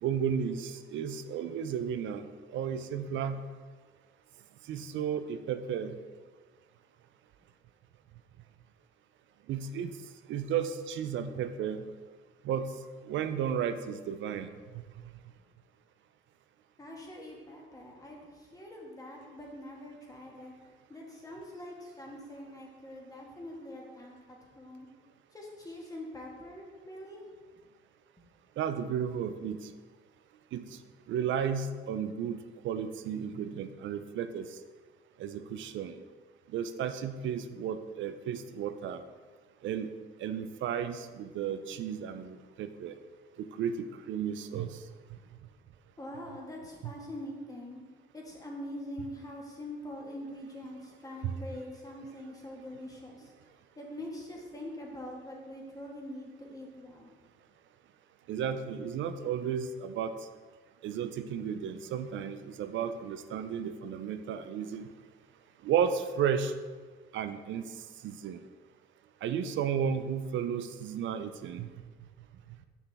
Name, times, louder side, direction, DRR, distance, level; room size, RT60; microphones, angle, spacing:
voice 1, 0.0-3.4 4.7-6.0 9.5-10.0 10.3-11.8 12.4-12.7 13.0-14.5 28.6-29.7 30.5-30.8 31.1-34.6 35.2-36.0 36.5-39.0 39.6-39.9 40.2-42.9 43.4-44.8 46.8-46.9 51.2-51.3 58.3-60.1 60.8-64.9 65.6-66.5 67.1-67.7 68.0-68.4 69.2-71.7, right 8 dB, 70° right, 10 dB, 0.4 m, -33 dB
voice 2, 16.8-20.5 20.9-24.9 25.3-27.2 28.2-28.3 46.0-47.8 48.1-53.3 53.8-57.1, left 1 dB, 15° left, -1 dB, 1.5 m, -44 dB
5.9 x 5.7 x 3.5 m, 1.5 s
cardioid pair, 90°, 20 cm